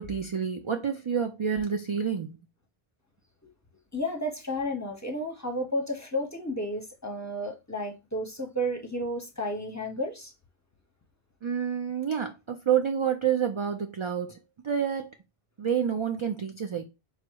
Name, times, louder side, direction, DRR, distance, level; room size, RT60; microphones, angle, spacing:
voice 1, 0.0-2.4 11.4-14.4 14.6-15.1 15.6-16.8, right 8 dB, 55° right, 0.3 m, -28 dB
voice 2, 3.9-10.3, equal, 20° left, 0.7 m, -32 dB
4.8 x 2.0 x 4.5 m
omnidirectional pair, 1.0 m